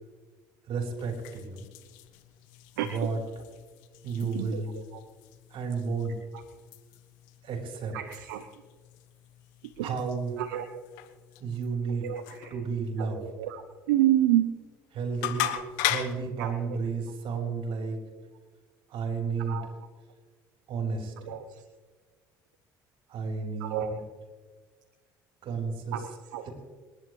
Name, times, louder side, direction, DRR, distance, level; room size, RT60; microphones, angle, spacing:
voice 1, 0.7-1.6 2.9-3.2 4.0-4.8 5.5-6.2 7.4-8.0 9.8-10.4 11.4-12.1 12.5-13.2 14.9-15.5 15.8-18.0 18.9-19.6 20.7-21.3 23.1-24.0 25.4-26.0, right 4 dB, 60° right, 2 dB, 4.2 m, -32 dB
sound 1, 0.9-16.3, left 14 dB, 75° left, 1.1 m, -40 dB
voice 2, 2.8-3.1 4.2-4.6 4.9-5.0 7.9-8.5 9.6-9.9 10.4-10.8 11.9-12.5 13.0-14.5 15.4-15.9 16.4-16.5 17.3-17.5 19.4-19.7 21.3-21.6 23.6-24.0 25.9-26.5, right 12 dB, 80° right, 8 dB, 0.8 m, -30 dB
27.0 x 11.0 x 3.2 m, 1.4 s
hypercardioid pair, 65°, 10 cm